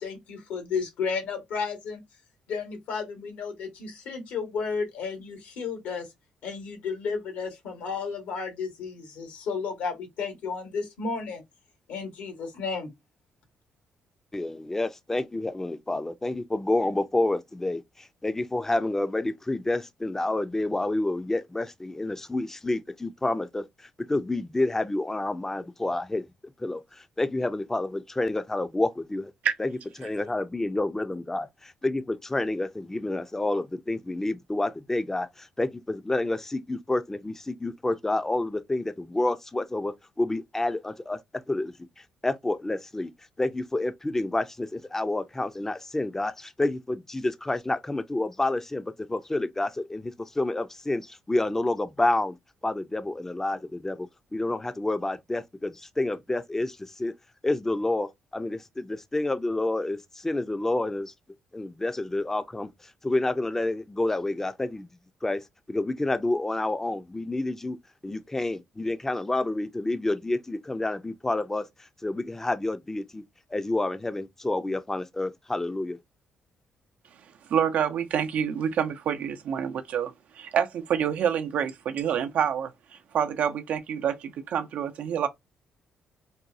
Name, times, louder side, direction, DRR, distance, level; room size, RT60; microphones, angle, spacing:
voice 1, 0.0-2.0 2.5-6.1 6.4-11.4 11.9-12.9, left 5 dB, 80° left, 1.6 m, -33 dB
voice 2, 14.3-23.6 24.0-26.2 26.6-29.3 29.6-29.7 30.0-41.2 41.5-41.7 42.2-43.1 43.4-52.4 52.6-57.1 57.4-61.1 61.5-64.9 65.2-65.4 65.7-67.8 68.0-71.7 72.0-73.2 73.5-76.0, left 2 dB, 15° left, 0.5 m, -29 dB
voice 3, 77.5-82.7 83.1-85.3, right 8 dB, 70° right, 0.6 m, -27 dB
4.1 x 2.2 x 2.6 m
supercardioid pair, 65°, 3 cm